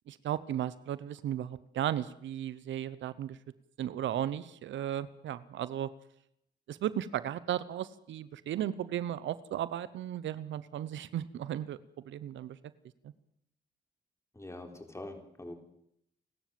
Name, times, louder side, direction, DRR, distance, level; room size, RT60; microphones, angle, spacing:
voice 1, 0.1-3.4 3.8-5.9 6.7-11.8 12.1-12.6, right 11 dB, 90° right, 16 dB, 0.9 m, -35 dB
voice 2, 14.3-15.5, left 1 dB, 15° left, 5 dB, 4.1 m, -44 dB
29.0 x 12.5 x 7.6 m, 0.75 s
cardioid pair, 75°, 19 cm